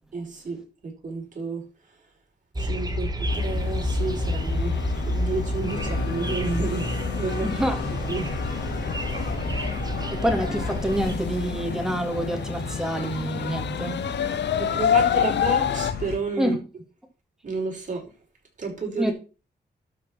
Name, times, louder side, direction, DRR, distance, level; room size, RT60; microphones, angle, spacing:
voice 1, 0.1-1.6 2.6-7.5 8.0-8.4 14.6-16.6 17.4-18.1 18.6-19.1, right 4 dB, 45° right, 5.4 m, -31 dB
sound 1, 2.5-11.1, equal, 20° right, 1.7 m, -29 dB
sound 2, 3.3-15.9, left 8 dB, 85° left, 0.8 m, -30 dB
sound 3, 5.7-16.2, left 4 dB, 70° left, 3.4 m, -34 dB
voice 2, 7.4-7.8 10.1-14.1 16.4-16.6 19.0-19.1, equal, 5° right, 2.9 m, -27 dB
12.0 x 5.2 x 6.0 m
wide cardioid pair, 105°, 18 cm